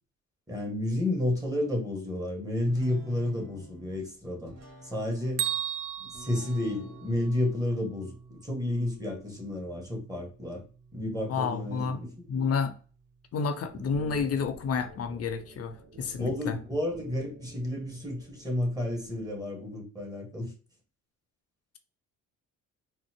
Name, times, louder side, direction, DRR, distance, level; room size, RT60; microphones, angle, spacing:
voice 1, 0.5-4.5 4.8-5.5 6.0-10.6 10.9-12.5 16.2-20.5, left 1 dB, 10° right, 1.4 m, -31 dB
sound 1, 2.6-14.1, right 1 dB, 60° right, 1.5 m, -52 dB
Bell, 5.4-7.4, right 10 dB, 85° right, 0.5 m, -34 dB
voice 2, 11.3-12.0 12.3-12.7 13.3-16.6, left 5 dB, 55° left, 0.6 m, -30 dB
sound 2, 13.7-19.3, right 2 dB, 40° right, 0.7 m, -49 dB
4.1 x 2.1 x 2.8 m
cardioid pair, 90°, 30 cm